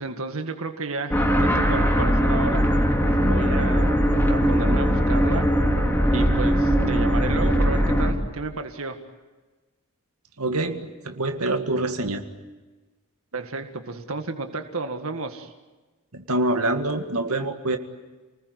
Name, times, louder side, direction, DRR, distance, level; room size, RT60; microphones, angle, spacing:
voice 1, 0.0-2.6 3.2-4.0 4.3-5.5 6.1-9.0 13.3-15.5, right 3 dB, 70° right, 6 dB, 1.9 m, -32 dB
sound 1, 1.1-8.1, equal, 10° left, 2.9 m, -20 dB
voice 2, 10.4-12.2 16.1-17.8, right 2 dB, 85° right, 6 dB, 2.0 m, -25 dB
29.0 x 20.0 x 9.7 m, 1.2 s
head